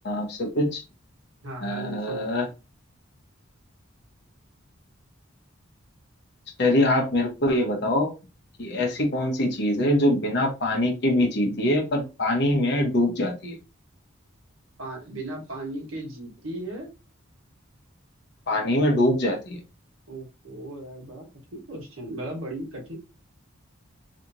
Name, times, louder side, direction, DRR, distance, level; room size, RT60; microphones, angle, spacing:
voice 1, 0.0-0.8 1.6-2.5 6.6-8.1 8.6-13.6 18.5-19.6, left 1 dB, 55° left, 0 dB, 1.1 m, -23 dB
voice 2, 1.4-2.3 14.8-16.9 20.1-23.0, right 1 dB, 80° right, -1 dB, 1.4 m, -36 dB
3.3 x 2.9 x 2.7 m, 0.29 s
head